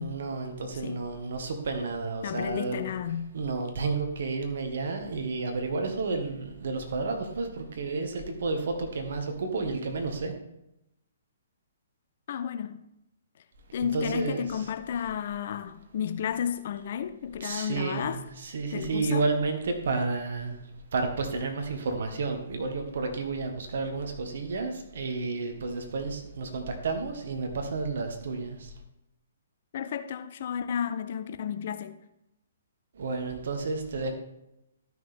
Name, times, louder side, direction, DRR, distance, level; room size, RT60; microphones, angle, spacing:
voice 1, 0.0-2.9 3.3-10.3 13.8-14.5 17.4-28.7 32.9-34.1, right 3 dB, 60° right, 1.7 m, -31 dB
voice 2, 2.2-3.3 12.3-12.8 13.7-18.2 18.7-19.3 29.7-32.0, left 8 dB, 55° left, 0.6 m, -32 dB
12.5 x 6.2 x 3.7 m
figure-of-eight pair, 125°, 0 cm